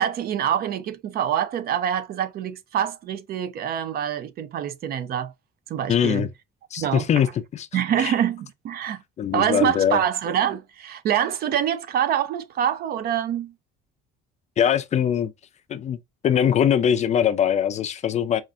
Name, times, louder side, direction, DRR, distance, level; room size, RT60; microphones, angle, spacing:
voice 1, 0.0-5.3 5.7-6.3 6.7-7.3 7.7-9.0 9.3-13.5, right 9 dB, 50° right, 0.6 m, -25 dB
voice 2, 5.9-6.3 6.7-7.3 7.5-7.7 8.0-8.1 9.2-10.0 14.6-15.3 15.7-16.0 16.2-18.4, left 9 dB, 35° left, 0.4 m, -21 dB
5.2 x 2.4 x 2.5 m
cardioid pair, 125°, 20 cm